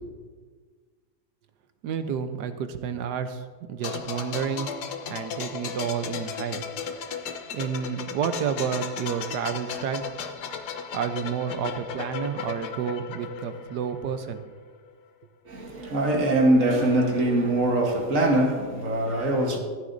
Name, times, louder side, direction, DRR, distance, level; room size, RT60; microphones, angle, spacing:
voice 1, 1.8-4.7 5.1-6.6 7.5-10.1 10.9-14.4, right 7 dB, 80° right, 1.4 m, -30 dB
sound 1, 3.8-14.4 14.7-14.9, left 7 dB, 75° left, 1.4 m, -35 dB
voice 2, 15.5-19.6, right 1 dB, 55° right, 1.6 m, -22 dB
14.5 x 12.5 x 2.6 m
omnidirectional pair, 1.8 m